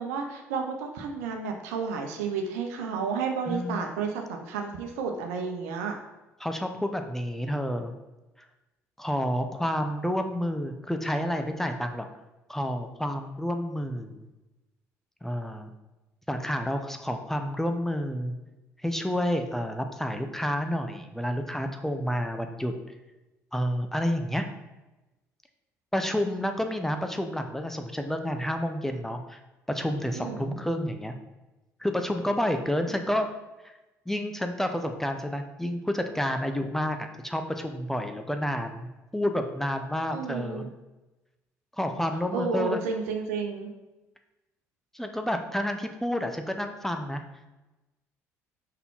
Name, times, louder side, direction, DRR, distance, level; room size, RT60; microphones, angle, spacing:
voice 1, 0.0-6.0 30.1-30.5 40.1-40.7 42.3-43.7, right 5 dB, 75° right, 3 dB, 0.9 m, -31 dB
voice 2, 3.5-3.9 6.4-7.9 9.0-12.1 12.5-14.2 15.2-15.7 16.3-18.3 18.8-22.7 23.5-24.4 25.9-29.4 29.7-31.1 31.8-33.3 33.6-33.7 34.1-40.7 41.8-42.8 44.9-47.2, equal, 5° left, 6 dB, 0.9 m, -29 dB
5.9 x 5.8 x 3.7 m, 1.0 s
figure-of-eight pair, 55°, 8 cm